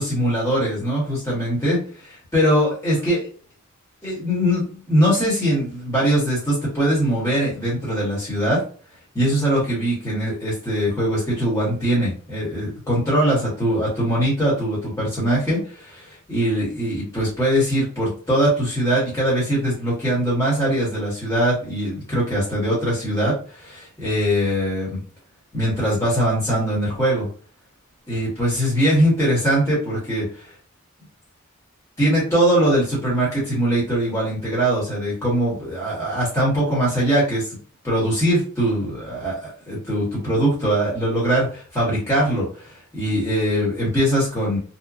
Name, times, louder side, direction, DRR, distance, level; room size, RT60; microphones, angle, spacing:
voice 1, 0.0-3.2 4.0-8.6 9.1-25.0 25.5-27.3 28.1-30.5 32.0-37.6 37.8-44.6, equal, 15° left, -8 dB, 1.2 m, -21 dB
2.9 x 2.2 x 2.4 m, 0.40 s
head